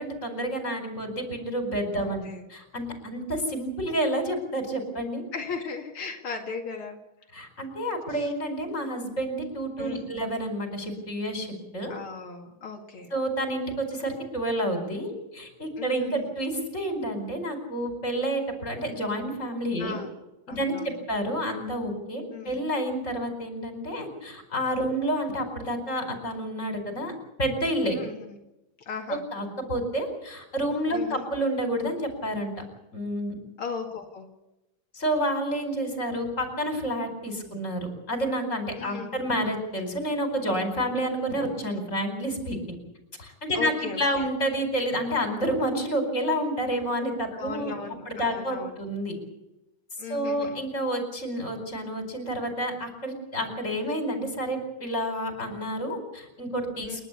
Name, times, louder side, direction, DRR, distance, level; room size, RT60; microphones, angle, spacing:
voice 1, 0.0-5.2 7.3-11.9 13.1-20.0 20.5-27.1 27.4-28.0 29.1-32.5 32.9-33.4 34.9-42.8 43.2-47.7 48.1-49.2 50.1-57.1, right 1 dB, 35° left, 5 dB, 5.0 m, -29 dB
voice 2, 2.0-2.5 5.3-7.0 8.1-8.3 9.8-10.1 11.9-13.1 15.8-16.3 19.8-20.1 20.5-20.9 22.3-22.6 27.9-28.4 28.8-29.2 30.9-31.2 33.6-34.3 38.8-39.3 43.5-44.2 47.3-48.8 50.0-50.6 56.8-57.1, left 5 dB, 90° left, 2 dB, 3.1 m, -37 dB
29.0 x 12.0 x 8.3 m, 0.96 s
omnidirectional pair, 2.3 m